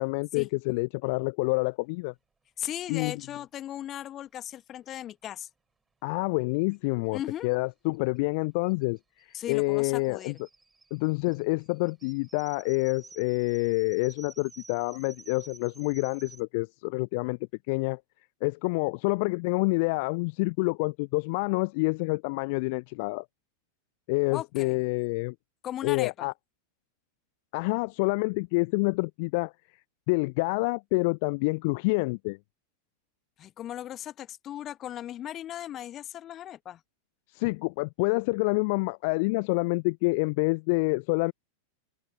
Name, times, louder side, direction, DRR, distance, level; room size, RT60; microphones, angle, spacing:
voice 1, 0.0-2.1 2.9-3.1 6.0-10.3 10.9-17.4 17.7-18.0 18.4-23.2 24.1-25.3 25.8-26.3 27.5-29.5 30.1-32.4 37.3-41.3, left 28 dB, 45° left, 0.8 m, -27 dB
voice 2, 2.6-5.5 7.1-7.5 9.3-10.4 24.3-24.8 25.6-26.3 33.4-36.8, left 11 dB, 30° left, 1.8 m, -37 dB
sound 1, 6.7-6.8 7.0-7.1 7.4-16.4, right 4 dB, 10° right, 7.4 m, -53 dB
figure-of-eight pair, 90°, 0 cm